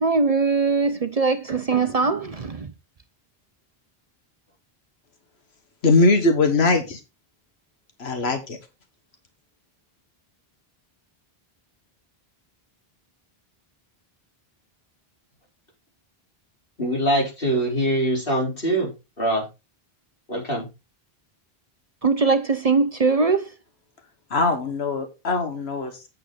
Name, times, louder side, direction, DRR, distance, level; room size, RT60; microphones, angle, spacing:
voice 1, 0.0-2.7 22.0-23.5, right 4 dB, 45° right, 0.6 m, -21 dB
voice 2, 5.8-7.0 8.0-8.6 24.3-26.1, left 3 dB, 90° left, 1.6 m, -21 dB
voice 3, 16.8-18.9 19.2-19.5 20.3-20.7, right 1 dB, 65° left, 4.2 m, -23 dB
8.7 x 7.5 x 3.9 m
omnidirectional pair, 1.0 m